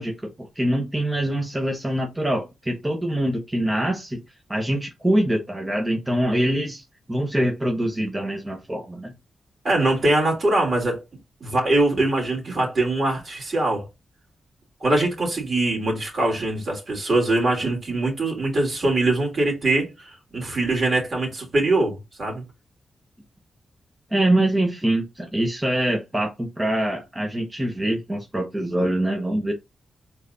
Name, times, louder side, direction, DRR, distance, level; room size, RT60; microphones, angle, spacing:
voice 1, 0.0-4.2 4.5-6.8 7.1-9.1 24.1-29.5, right 1 dB, 20° right, 1.1 m, -24 dB
voice 2, 9.6-11.0 11.4-13.9 14.8-22.4, right 2 dB, 50° right, 3.1 m, -22 dB
4.8 x 4.1 x 2.7 m
cardioid pair, 60°, 0 cm